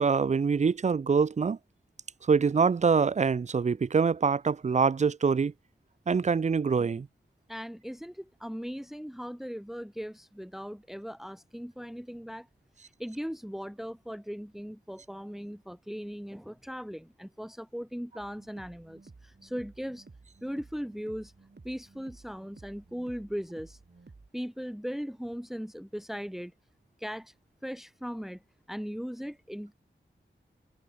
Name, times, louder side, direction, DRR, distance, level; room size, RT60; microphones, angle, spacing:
voice 1, 0.0-1.6 2.3-5.5 6.1-7.1, right 5 dB, 35° right, 0.4 m, -25 dB
voice 2, 7.5-12.5 13.0-20.1 20.4-21.3 21.6-23.8 24.3-26.5 27.0-27.3 27.6-28.4 28.7-29.7, equal, ahead, 1.9 m, -38 dB
sound 1, 18.2-24.3, right 3 dB, 60° right, 4.2 m, -54 dB
wide cardioid pair, 70°, 20 cm